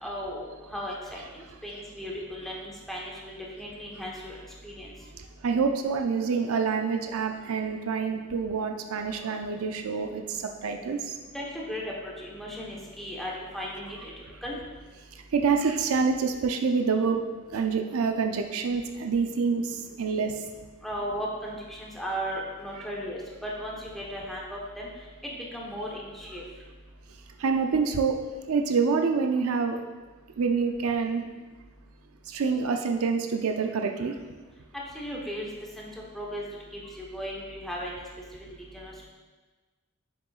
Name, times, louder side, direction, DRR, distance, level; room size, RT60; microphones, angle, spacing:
voice 1, 0.0-4.4 4.6-4.9 11.3-14.1 14.4-14.6 20.8-24.9 25.2-26.4 34.9-35.5 35.8-35.9 36.1-36.4 37.0-38.0 38.7-39.1, equal, ahead, -4 dB, 1.1 m, -36 dB
voice 2, 5.4-11.1 15.3-17.2 17.5-19.7 20.0-20.3 22.8-22.9 27.4-28.2 28.5-29.8 30.4-31.2 32.3-34.1, right 5 dB, 75° right, 4 dB, 0.5 m, -26 dB
7.5 x 6.7 x 2.4 m, 1.3 s
head